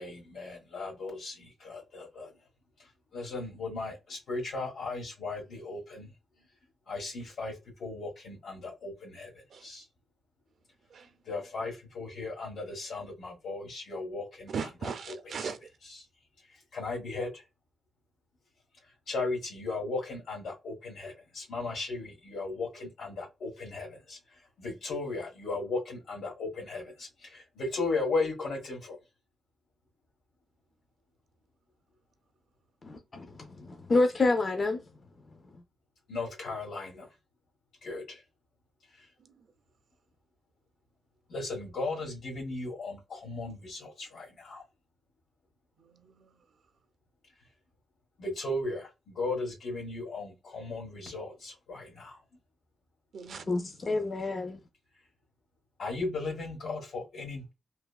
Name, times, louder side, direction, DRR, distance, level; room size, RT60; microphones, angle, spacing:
voice 1, 0.0-2.3 3.1-6.1 6.9-7.5 7.8-9.3 9.6-9.8 11.3-14.5 16.7-17.4 19.1-24.2 24.6-29.0 36.1-37.1 37.8-38.2 41.3-44.6 48.2-52.2 55.8-57.5, left 3 dB, 70° left, 1.4 m, -36 dB
voice 2, 14.5-15.6 39.2-39.4 45.8-46.4 53.1-53.6, right 6 dB, 60° right, 0.4 m, -39 dB
voice 3, 32.8-34.8 53.5-54.6, left 3 dB, 35° left, 0.4 m, -28 dB
3.2 x 2.1 x 2.2 m
wide cardioid pair, 135°, 0 cm